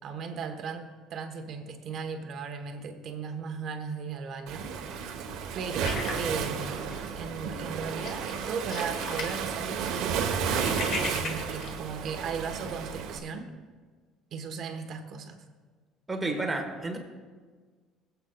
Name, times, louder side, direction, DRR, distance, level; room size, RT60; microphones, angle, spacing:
voice 1, 0.0-4.7 5.5-6.9 7.2-13.5 14.3-15.4, right 5 dB, 45° right, 6 dB, 0.9 m, -37 dB
Waves surf, 4.5-13.2, right 6 dB, 70° right, 0.9 m, -32 dB
sound 1, 5.8-7.2 7.5-7.7 8.0-9.4 9.7-11.7, left 3 dB, 45° left, 1.2 m, -37 dB
voice 2, 16.1-17.0, right 2 dB, 10° right, 3 dB, 1.2 m, -31 dB
20.5 x 7.9 x 2.2 m, 1.5 s
cardioid pair, 160°, 0 cm